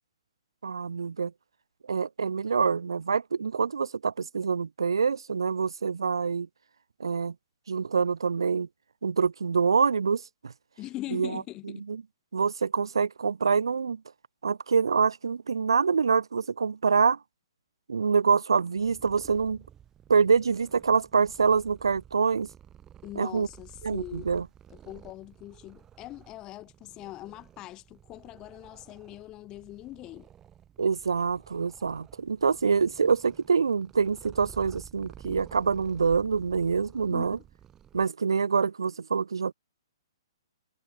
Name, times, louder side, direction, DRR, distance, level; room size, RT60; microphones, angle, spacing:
voice 1, 0.6-1.3 1.9-6.5 7.0-7.3 7.7-8.7 9.0-10.5 11.1-11.4 11.9-12.0 12.3-14.0 14.4-17.2 17.9-19.6 20.1-22.5 23.2-23.5 23.8-24.4 30.8-37.4 37.9-39.5, right 5 dB, 70° right, 1.0 m, -25 dB
voice 2, 10.8-11.8 23.0-24.3 24.7-30.3 37.0-37.3, left 16 dB, 25° left, 7.7 m, -42 dB
Purr, 18.7-38.1, right 10 dB, 20° right, 3.5 m, -52 dB
figure-of-eight pair, 120°, 3 cm